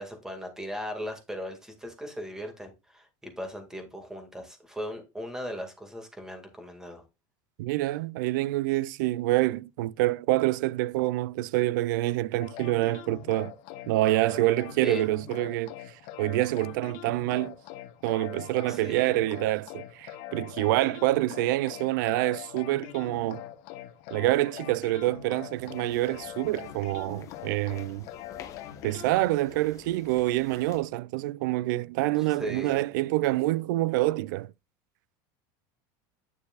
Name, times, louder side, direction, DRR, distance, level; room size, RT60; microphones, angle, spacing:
voice 1, 0.0-7.0 14.8-15.0 18.7-19.1 32.4-32.8, equal, 5° right, 2.0 m, -38 dB
voice 2, 7.6-13.5 13.9-17.6 18.0-23.4 24.1-28.1 28.8-34.5, right 17 dB, 80° right, 0.4 m, -27 dB
sound 1, 12.4-29.2, left 11 dB, 60° left, 1.1 m, -43 dB
sound 2, 25.5-30.8, left 8 dB, 30° left, 1.0 m, -50 dB
9.6 x 6.7 x 2.4 m
supercardioid pair, 145°, 10 cm